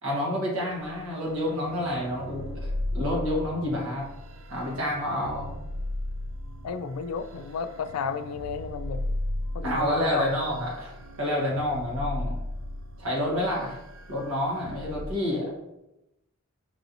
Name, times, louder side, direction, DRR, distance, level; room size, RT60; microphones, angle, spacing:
voice 1, 0.0-4.0 4.5-5.5 9.6-12.4 13.0-13.8 14.1-15.5, left 1 dB, 75° right, -3 dB, 1.4 m, -29 dB
sound 1, 0.7-15.1, left 1 dB, 60° right, 0.3 m, -36 dB
voice 2, 6.6-9.0 9.5-10.3, left 6 dB, 90° left, 11 dB, 0.3 m, -32 dB
5.3 x 2.8 x 2.6 m, 0.91 s
head